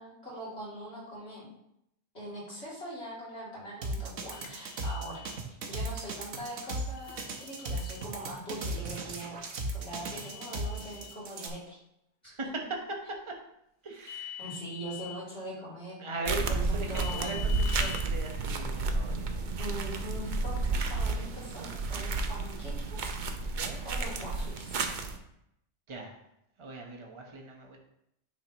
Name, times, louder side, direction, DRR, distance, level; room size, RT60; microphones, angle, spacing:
voice 1, 0.0-1.5 2.1-5.3 5.7-9.4 9.7-11.8 14.4-16.0 16.5-17.4 19.6-23.0 23.8-24.7, equal, 55° left, -8 dB, 3.0 m, -42 dB
sound 1, 3.8-11.5, right 1 dB, 75° right, 1.2 m, -36 dB
sound 2, 4.3-5.4 7.0-8.1 10.1-11.2 14.0-15.2 16.9-18.0, left 11 dB, 85° left, 1.2 m, -44 dB
voice 2, 12.2-12.6 12.9-13.4 13.8-14.6 16.0-19.4 23.6-23.8 25.9-26.2 26.6-27.8, right 2 dB, 25° right, 1 dB, 0.9 m, -40 dB
sound 3, 16.3-25.2, right 3 dB, 55° right, 0.6 m, -31 dB
9.4 x 4.1 x 3.0 m, 0.79 s
omnidirectional pair, 1.3 m